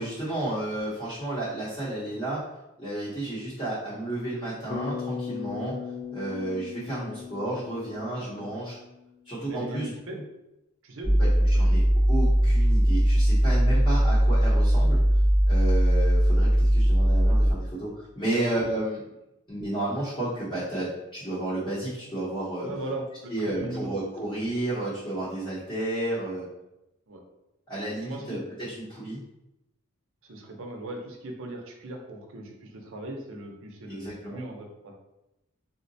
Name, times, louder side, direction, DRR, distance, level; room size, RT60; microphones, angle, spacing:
voice 1, 0.0-2.4 2.8-5.8 6.1-8.8 9.2-9.9 11.2-11.3 11.6-11.8 12.1-15.0 15.5-19.0 19.5-22.7 23.3-26.4 27.7-29.2 33.9-34.4, right 1 dB, 20° left, -10 dB, 0.8 m, -32 dB
Bass guitar, 4.7-9.1, left 7 dB, 35° left, 0.4 m, -38 dB
voice 2, 9.5-10.2 10.8-11.8 18.4-18.5 22.6-24.0 27.1-27.2 28.1-28.4 30.2-35.0, right 1 dB, 65° right, 2 dB, 0.6 m, -38 dB
sound 1, 11.0-17.5, equal, 80° left, 1.4 m, -20 dB
3.7 x 2.1 x 2.6 m, 0.90 s
head